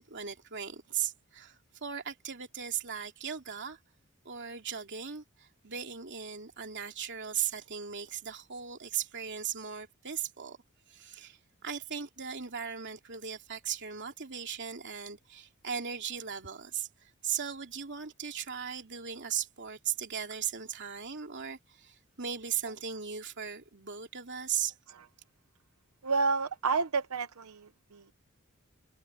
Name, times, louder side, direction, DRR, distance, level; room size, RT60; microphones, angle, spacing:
voice 1, 0.0-3.8 4.2-10.6 10.9-24.7, right 8 dB, 55° right, 2.8 m, -37 dB
voice 2, 26.0-28.0, right 4 dB, 90° right, 0.9 m, -30 dB
head